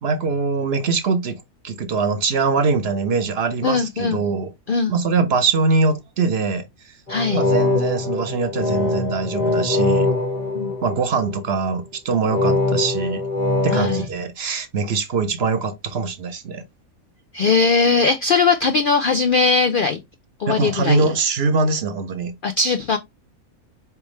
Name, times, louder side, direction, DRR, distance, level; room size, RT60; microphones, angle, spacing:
voice 1, 0.0-4.5 4.9-6.6 7.3-10.1 10.8-13.2 13.6-16.6 20.5-22.3, right 4 dB, 55° right, 0.8 m, -22 dB
voice 2, 3.6-4.2 4.7-4.9 7.1-7.4 10.5-10.7 13.7-14.0 17.3-20.0 20.4-21.1 22.4-23.0, left 4 dB, 85° left, 0.4 m, -19 dB
sound 1, 7.1-11.4 12.3-14.0, left 2 dB, 25° left, 1.2 m, -22 dB
4.4 x 3.4 x 3.1 m
omnidirectional pair, 1.5 m